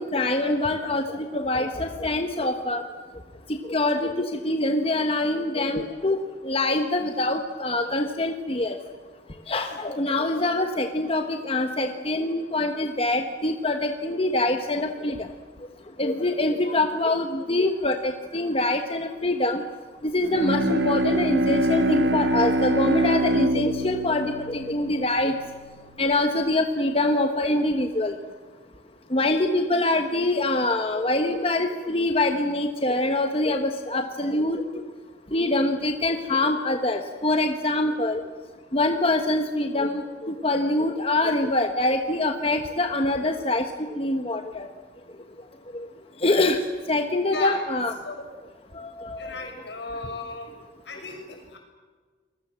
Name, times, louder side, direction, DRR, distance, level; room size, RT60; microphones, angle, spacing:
voice 1, 0.0-2.8 3.7-6.2 6.4-8.8 9.5-15.2 16.0-19.6 20.1-25.4 26.0-28.1 29.1-34.6 35.3-38.2 38.7-43.6 43.9-44.7 45.7-45.8 46.2-46.6 46.9-47.9 48.8-49.3, left 2 dB, 30° left, 6 dB, 1.3 m, -24 dB
Bowed string instrument, 20.2-25.6, right 1 dB, 75° right, 2.2 m, -24 dB
voice 2, 49.2-50.5 50.8-51.6, left 3 dB, 70° left, 2 dB, 6.8 m, -36 dB
29.0 x 21.5 x 7.6 m, 1.5 s
head